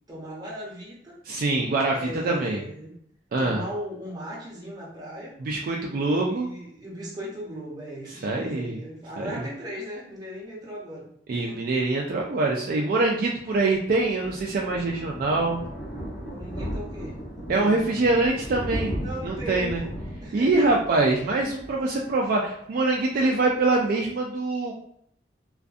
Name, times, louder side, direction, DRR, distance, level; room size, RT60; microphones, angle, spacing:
voice 1, 0.1-1.2 1.9-2.9 3.4-5.4 6.0-11.6 16.3-17.8 19.0-20.5, equal, 20° right, -4 dB, 0.8 m, -38 dB
voice 2, 1.2-2.6 3.3-3.6 5.4-6.5 8.2-8.8 9.2-9.4 11.3-15.6 17.5-19.8 20.3-24.7, right 2 dB, 50° right, -1 dB, 0.3 m, -24 dB
Thunder, 13.2-22.6 22.9-23.2 23.5-23.6 23.7-23.8, equal, 65° left, 0.8 m, -36 dB
2.5 x 2.4 x 2.3 m, 0.68 s
head